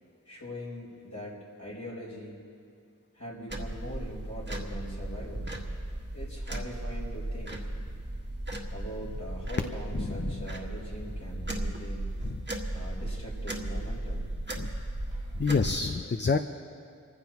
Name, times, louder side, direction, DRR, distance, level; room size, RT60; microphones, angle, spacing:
voice 1, 0.3-2.4 3.1-5.5 6.1-7.7 8.7-12.0 12.7-14.3 15.1-15.5, equal, 60° left, -6 dB, 4.2 m, -42 dB
sound 1, 3.5-15.7, right 1 dB, 35° right, 1.7 m, -36 dB
voice 2, 9.9-10.5 12.2-12.4 14.6-14.7 15.4-16.4, left 4 dB, 35° left, 7 dB, 0.5 m, -28 dB
27.0 x 15.0 x 3.0 m, 2.3 s
wide cardioid pair, 50°, 32 cm